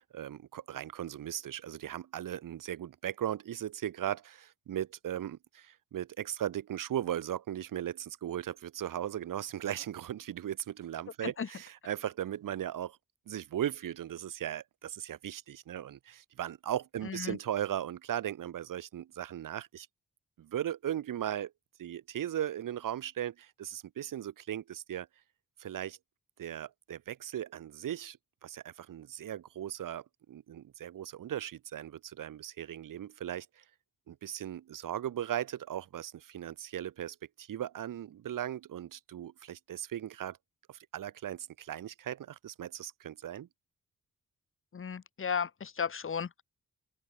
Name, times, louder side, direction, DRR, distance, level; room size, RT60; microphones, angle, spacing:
voice 1, 0.0-13.0 13.3-19.9 20.4-21.5 21.8-25.1 25.6-26.0 26.4-28.2 28.4-33.6 34.1-40.4 40.7-43.5, right 11 dB, 75° right, 1.5 m, -37 dB
voice 2, 17.0-17.4 44.7-46.4, left 6 dB, 40° left, 1.1 m, -35 dB
open air
cardioid pair, 55°, 32 cm